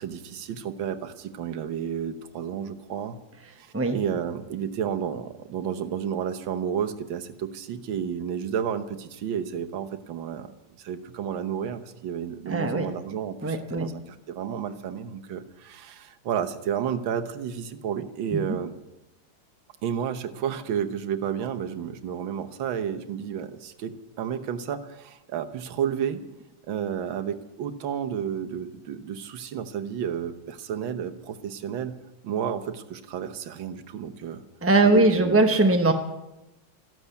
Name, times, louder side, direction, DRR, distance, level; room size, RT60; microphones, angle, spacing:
voice 1, 0.0-3.2 3.6-10.5 10.8-18.7 19.8-26.2 26.7-32.0 32.2-34.4 34.8-35.4, right 8 dB, 70° right, 8 dB, 1.8 m, -31 dB
voice 2, 12.5-12.9 13.4-13.9 18.3-18.4 34.6-35.9, right 2 dB, 20° right, 5 dB, 0.4 m, -20 dB
14.0 x 12.5 x 8.2 m, 0.97 s
omnidirectional pair, 2.2 m